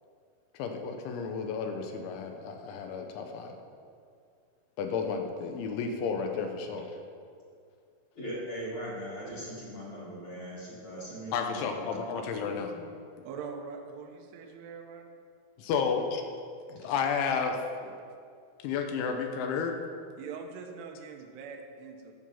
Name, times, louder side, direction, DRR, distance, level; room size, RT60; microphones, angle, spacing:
voice 1, 0.6-3.5 4.8-6.9 11.3-12.7 15.6-16.2 16.7-17.9 18.6-19.7, left 5 dB, 80° left, 4 dB, 3.0 m, -32 dB
voice 2, 8.1-12.8 16.8-16.9, equal, 45° left, -8 dB, 2.8 m, -40 dB
voice 3, 13.2-15.2 20.2-22.1, right 5 dB, 80° right, 4 dB, 2.4 m, -43 dB
13.0 x 7.2 x 5.7 m, 2.3 s
omnidirectional pair, 5.9 m